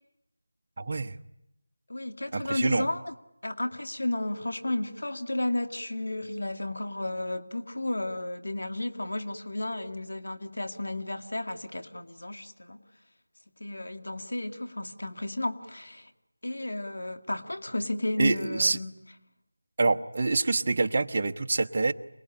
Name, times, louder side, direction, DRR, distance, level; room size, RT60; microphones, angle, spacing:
voice 1, 0.8-1.2 2.3-2.9 18.2-18.8 19.8-21.9, right 3 dB, 35° right, 5 dB, 1.0 m, -26 dB
voice 2, 1.9-3.1 3.4-12.8 13.6-16.1 16.4-19.0, left 1 dB, 80° left, 7 dB, 2.2 m, -33 dB
27.5 x 20.0 x 10.0 m, 0.86 s
figure-of-eight pair, 175°, 0 cm